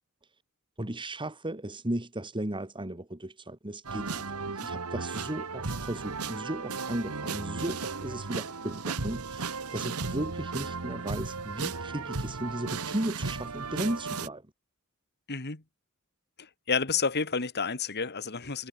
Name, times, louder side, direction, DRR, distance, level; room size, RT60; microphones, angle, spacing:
voice 1, 0.8-14.5, right 1 dB, 20° right, 2.2 m, -35 dB
sound 1, 3.8-14.3, right 4 dB, 85° right, 1.5 m, -35 dB
voice 2, 15.3-15.6 16.4-18.7, left 5 dB, 50° left, 2.4 m, -30 dB
head